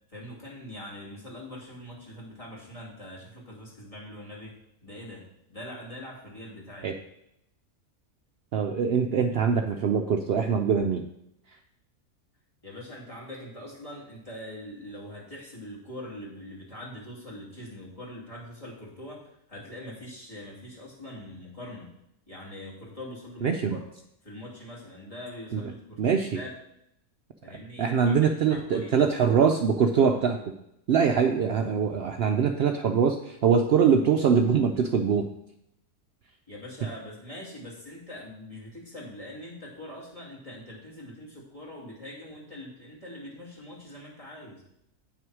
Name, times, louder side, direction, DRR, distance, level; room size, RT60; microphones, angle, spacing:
voice 1, 0.1-4.5 4.8-6.9 12.6-21.9 22.3-23.8 24.2-26.5 27.4-29.0 36.5-44.6, left 1 dB, 20° left, -5 dB, 2.5 m, -43 dB
voice 2, 8.5-11.0 23.4-23.8 25.5-25.6 26.0-26.4 27.8-30.4 30.9-35.2, right 6 dB, 75° right, 6 dB, 0.5 m, -23 dB
8.7 x 6.1 x 4.7 m, 0.79 s
omnidirectional pair, 1.6 m